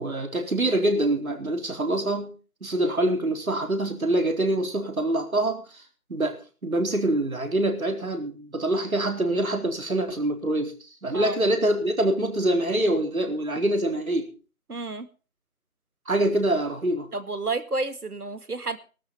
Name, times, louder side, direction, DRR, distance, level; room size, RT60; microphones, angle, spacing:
voice 1, 0.0-5.8 6.1-10.7 11.0-14.3 16.1-17.1, right 1 dB, 65° right, 4 dB, 4.3 m, -25 dB
voice 2, 14.7-15.1 17.1-18.8, right 3 dB, 85° right, 10 dB, 2.3 m, -30 dB
18.5 x 12.5 x 4.0 m, 0.35 s
figure-of-eight pair, 170°, 45 cm